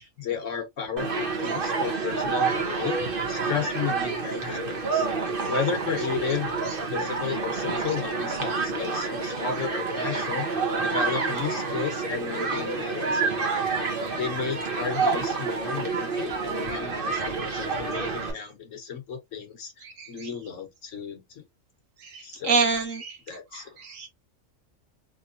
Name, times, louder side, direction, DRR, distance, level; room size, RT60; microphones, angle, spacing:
voice 1, 0.2-3.0 3.3-5.1 5.5-6.5 6.9-13.6 13.9-21.4 22.2-22.7 23.3-23.6, left 6 dB, 70° left, 1.5 m, -33 dB
Human group actions, 1.0-18.3, right 4 dB, 45° right, 1.2 m, -28 dB
voice 2, 22.1-23.1 23.5-24.1, right 4 dB, 75° right, 1.4 m, -26 dB
3.7 x 3.0 x 2.6 m
omnidirectional pair, 1.4 m